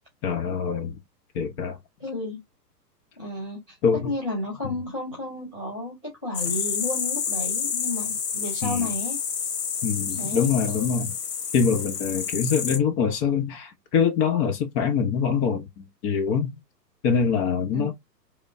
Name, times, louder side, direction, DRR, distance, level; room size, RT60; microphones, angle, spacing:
voice 1, 0.2-1.0 1.3-1.8 3.8-4.1 8.6-8.9 9.8-11.1 11.5-16.5 17.0-17.9, left 6 dB, 25° left, 1.0 m, -24 dB
voice 2, 2.0-2.4 3.2-3.8 4.0-9.2 10.2-10.5 17.7-17.9, left 2 dB, 5° right, 0.3 m, -32 dB
sound 1, 6.3-12.8, left 7 dB, 65° left, 1.2 m, -29 dB
3.6 x 3.4 x 2.6 m
figure-of-eight pair, 115°, 49 cm